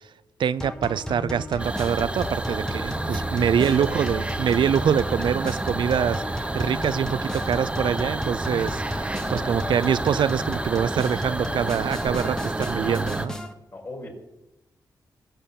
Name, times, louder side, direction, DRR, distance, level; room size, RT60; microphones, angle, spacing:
voice 1, 0.4-13.4, right 8 dB, 85° right, 16 dB, 0.5 m, -25 dB
sound 1, 0.6-13.5, left 1 dB, 10° left, 1.5 m, -35 dB
sound 2, 1.6-13.3, right 2 dB, 15° right, 0.8 m, -30 dB
voice 2, 3.5-4.0 5.3-5.4 9.2-10.0 13.7-14.1, left 2 dB, 40° left, 0 dB, 5.7 m, -38 dB
21.5 x 7.9 x 7.1 m, 0.95 s
wide cardioid pair, 115°, 8 cm